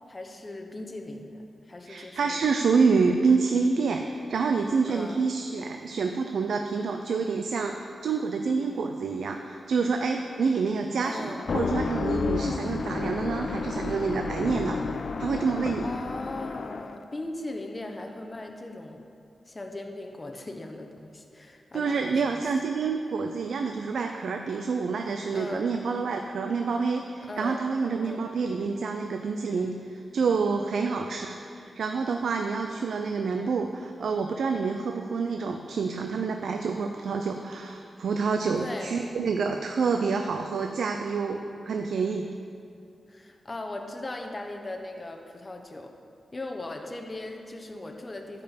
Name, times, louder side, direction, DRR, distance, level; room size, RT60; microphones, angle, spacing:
voice 1, 0.1-2.4 4.9-5.2 11.0-11.5 15.8-19.0 19.5-22.4 25.3-25.7 27.2-27.7 28.0-28.2 30.8-31.0 38.6-39.0 43.1-45.9 46.3-48.4, left 2 dB, 25° left, 4 dB, 0.8 m, -38 dB
voice 2, 1.9-14.8 15.2-15.9 21.7-42.3, right 5 dB, 85° right, 4 dB, 0.5 m, -27 dB
sound 1, 11.4-17.0, left 4 dB, 60° left, 0.4 m, -31 dB
12.5 x 5.4 x 7.2 m, 2.5 s
wide cardioid pair, 125°, 0 cm